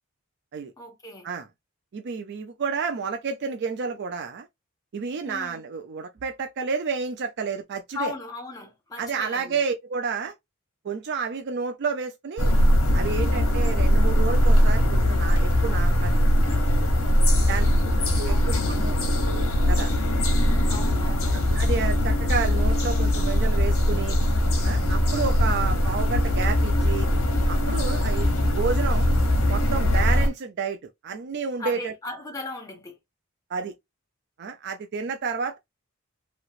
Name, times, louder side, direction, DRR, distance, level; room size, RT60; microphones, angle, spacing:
voice 1, 0.8-1.3 5.2-5.6 7.9-9.6 17.5-17.9 18.3-18.8 20.7-21.4 31.6-33.0, left 3 dB, 15° left, 0.9 m, -37 dB
voice 2, 1.9-4.5 4.9-8.1 9.0-10.3 10.8-12.6 12.9-16.1 17.5-17.7 18.2-19.4 19.7-19.9 20.5-20.6 21.3-24.2 24.6-27.1 27.5-29.1 29.5-30.8 31.0-31.9 33.5-33.7 34.4-35.6, right 5 dB, 50° right, 0.4 m, -30 dB
sound 1, 12.4-30.3, left 1 dB, 70° left, 1.1 m, -21 dB
3.1 x 2.9 x 2.4 m
head